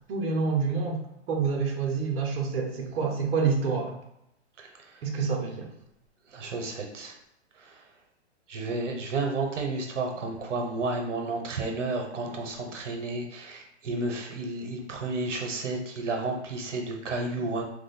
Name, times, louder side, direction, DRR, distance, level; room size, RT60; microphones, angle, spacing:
voice 1, 0.1-1.0 1.3-4.0 5.0-5.7, right 5 dB, 55° right, 0 dB, 0.8 m, -27 dB
voice 2, 6.3-7.1 8.5-17.6, right 3 dB, 90° right, 2 dB, 1.0 m, -31 dB
2.9 x 2.2 x 4.1 m, 0.81 s
hypercardioid pair, 145°, 36 cm